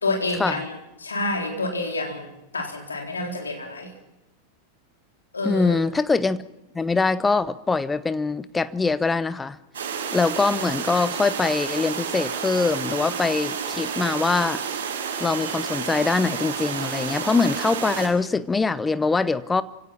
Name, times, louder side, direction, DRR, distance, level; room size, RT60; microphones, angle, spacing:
voice 1, 0.0-3.9 5.3-5.8, left 2 dB, 75° left, 2 dB, 3.9 m, -28 dB
voice 2, 5.4-6.4 6.7-9.6 10.1-14.6 15.2-19.6, left 4 dB, 10° left, 16 dB, 0.9 m, -23 dB
sound 1, 9.7-18.1, right 6 dB, 65° right, 6.8 m, -30 dB
28.0 x 17.0 x 5.8 m, 0.92 s
figure-of-eight pair, 90°, 0 cm